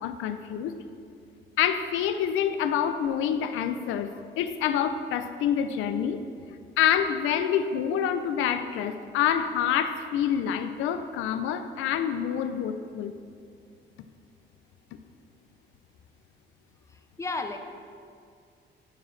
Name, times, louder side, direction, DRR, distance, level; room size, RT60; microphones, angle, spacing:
voice 1, 0.0-0.8 1.6-6.2 6.8-13.1, left 9 dB, 90° left, 9 dB, 0.4 m, -27 dB
voice 2, 16.9-17.6, left 3 dB, 15° left, 6 dB, 0.5 m, -33 dB
9.9 x 4.7 x 3.1 m, 2.3 s
cardioid pair, 90°, 20 cm